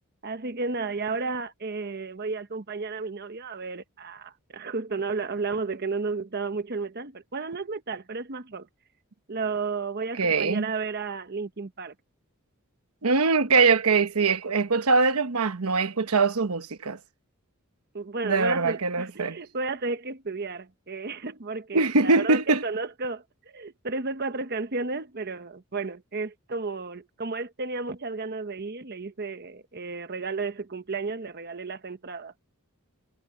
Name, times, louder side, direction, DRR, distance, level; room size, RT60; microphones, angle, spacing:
voice 1, 0.2-8.7 9.3-11.9 17.9-32.3, right 4 dB, 45° right, 1.0 m, -33 dB
voice 2, 10.1-10.7 13.0-17.0 18.2-19.4 21.7-22.6, right 4 dB, 85° right, 1.1 m, -22 dB
head